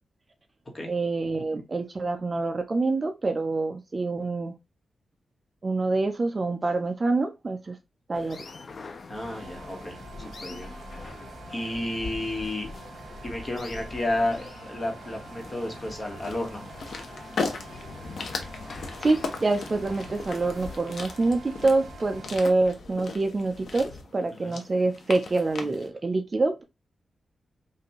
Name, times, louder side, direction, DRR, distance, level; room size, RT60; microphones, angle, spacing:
voice 1, 0.9-4.5 5.6-7.8 8.1-8.5 19.0-26.6, right 3 dB, 30° right, 0.4 m, -26 dB
sound 1, 8.1-20.8, left 3 dB, 40° left, 0.5 m, -43 dB
voice 2, 9.1-10.7 11.5-12.7 13.2-16.6 24.4-24.5, left 1 dB, 25° left, 1.3 m, -31 dB
sound 2, 9.1-22.4, right 5 dB, 85° right, 1.0 m, -47 dB
sound 3, 16.2-25.9, left 4 dB, 60° left, 0.9 m, -37 dB
5.5 x 2.6 x 2.9 m
wide cardioid pair, 160°, 0 cm